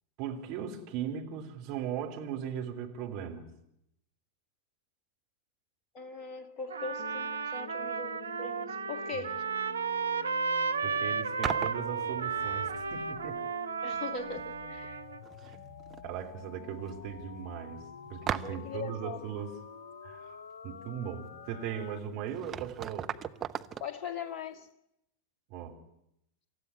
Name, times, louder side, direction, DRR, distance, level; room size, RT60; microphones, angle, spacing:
voice 1, 0.2-3.5 9.1-9.3 10.8-13.4 15.4-15.7 16.0-19.5 20.0-23.1 25.5-25.8, right 8 dB, 45° right, 3.3 m, -38 dB
voice 2, 5.9-9.4 13.8-15.0 18.4-19.2 23.8-24.7, left 5 dB, 30° left, 2.1 m, -40 dB
Trumpet, 6.7-15.2, right 5 dB, 70° right, 0.8 m, -33 dB
sound 1, 7.0-22.0, left 6 dB, 60° left, 0.9 m, -48 dB
sound 2, 11.4-11.9 13.9-14.0 14.3-14.9 15.2-16.0 16.3-16.4 16.9-17.0 18.3-18.8 21.8-21.9 22.3-23.9, right 9 dB, 25° right, 0.8 m, -37 dB
27.0 x 14.0 x 9.7 m
figure-of-eight pair, 90°, 0 cm